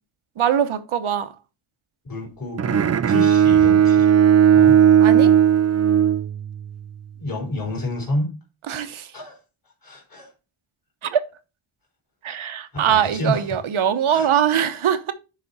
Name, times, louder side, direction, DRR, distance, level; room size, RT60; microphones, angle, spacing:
voice 1, 0.4-1.3 5.0-5.4 8.7-9.1 11.0-11.2 12.2-15.1, right 9 dB, 75° right, 1.0 m, -22 dB
voice 2, 2.0-4.1 4.5-4.8 7.2-8.3 9.1-9.4 9.8-10.3 12.7-13.6 14.1-14.3, left 1 dB, 45° left, 4.0 m, -29 dB
Bowed string instrument, 2.6-6.8, right 9 dB, 35° right, 0.4 m, -16 dB
11.0 x 4.2 x 4.0 m
wide cardioid pair, 100°, 48 cm